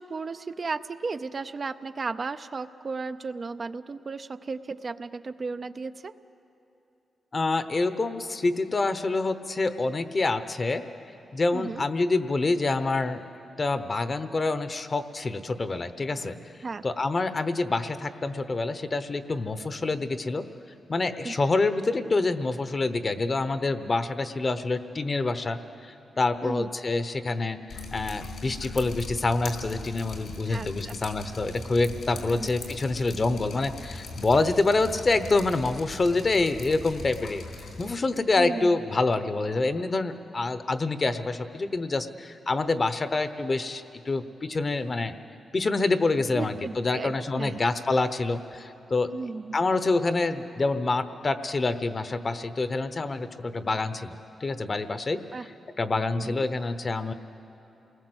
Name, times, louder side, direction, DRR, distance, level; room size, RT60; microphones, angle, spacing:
voice 1, 0.0-6.1 11.5-11.8 16.6-16.8 21.2-21.3 26.4-26.7 30.4-30.9 32.3-32.5 38.4-38.7 46.3-47.6 49.1-49.6 55.3-55.5 56.1-56.5, right 4 dB, 40° right, 10 dB, 0.6 m, -35 dB
voice 2, 7.3-10.8 11.3-13.2 13.6-16.4 16.8-20.5 20.9-37.4 37.8-45.1 45.5-49.1 49.5-54.1 54.4-55.2 55.8-57.1, left 3 dB, 35° left, 11 dB, 1.0 m, -27 dB
Drip, 27.7-37.9, left 3 dB, 75° left, 3.7 m, -40 dB
28.0 x 19.5 x 8.0 m, 3.0 s
cardioid pair, 110°, 0 cm